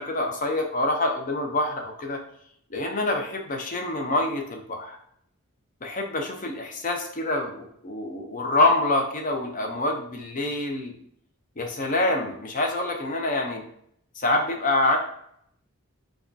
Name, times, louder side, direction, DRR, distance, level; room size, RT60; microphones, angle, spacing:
voice 1, 0.0-2.2 2.7-5.0 5.8-11.0 11.6-13.6 14.2-15.0, left 2 dB, 40° left, 3 dB, 0.6 m, -26 dB
4.7 x 2.3 x 2.6 m, 0.70 s
head